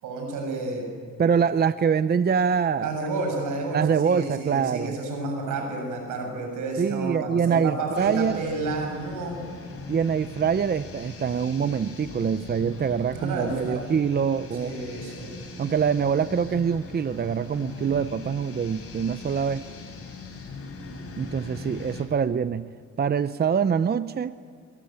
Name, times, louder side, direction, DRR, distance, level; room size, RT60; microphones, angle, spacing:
voice 1, 0.0-0.8 2.8-9.3 13.1-13.9 14.5-15.4, right 3 dB, 85° right, 3 dB, 7.7 m, -31 dB
voice 2, 1.2-2.9 3.7-4.9 6.8-8.4 9.9-14.7 15.6-19.7 21.2-22.7 23.0-24.4, right 7 dB, 35° right, 13 dB, 0.7 m, -24 dB
sound 1, 7.9-22.0, left 4 dB, 50° left, 6.9 m, -40 dB
22.0 x 22.0 x 9.0 m, 2.2 s
cardioid pair, 90°, 30 cm